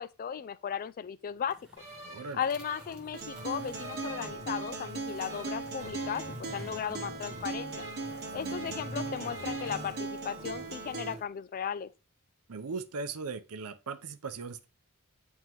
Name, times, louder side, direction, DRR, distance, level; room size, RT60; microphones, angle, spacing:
voice 1, 0.0-1.6 2.3-7.8 8.3-11.9, left 8 dB, 40° left, 0.3 m, -36 dB
sound 1, 1.4-11.3, equal, 5° right, 1.0 m, -48 dB
sound 2, 1.8-4.9 5.3-9.0 9.2-9.8, right 1 dB, 30° right, 1.6 m, -49 dB
voice 2, 2.0-2.4 8.2-8.8 12.5-14.7, right 4 dB, 80° right, 0.6 m, -39 dB
Acoustic guitar, 3.1-11.1, right 3 dB, 50° right, 1.0 m, -39 dB
9.1 x 3.5 x 3.0 m
head